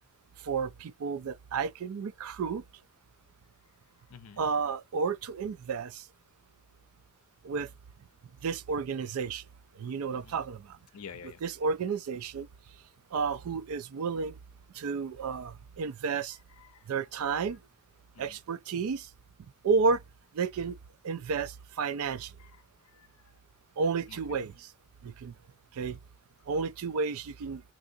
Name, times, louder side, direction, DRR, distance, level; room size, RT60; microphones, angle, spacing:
voice 1, 0.4-2.6 4.4-6.0 7.4-7.7 8.4-9.4 9.8-10.6 11.4-12.5 13.1-14.3 14.8-16.4 16.9-17.6 18.2-19.1 19.6-20.0 20.3-20.7 21.0-21.5 21.8-22.3 23.8-24.5 25.0-25.3 25.8-26.0 26.5-27.6, right 5 dB, 75° right, 0.4 m, -31 dB
voice 2, 4.1-4.5 10.1-10.4 10.9-11.4 16.6-16.9 17.3-17.5 18.1-18.4 21.8-21.9 22.4-23.4 24.1-24.2, left 6 dB, 75° left, 0.5 m, -50 dB
3.7 x 2.4 x 2.6 m
head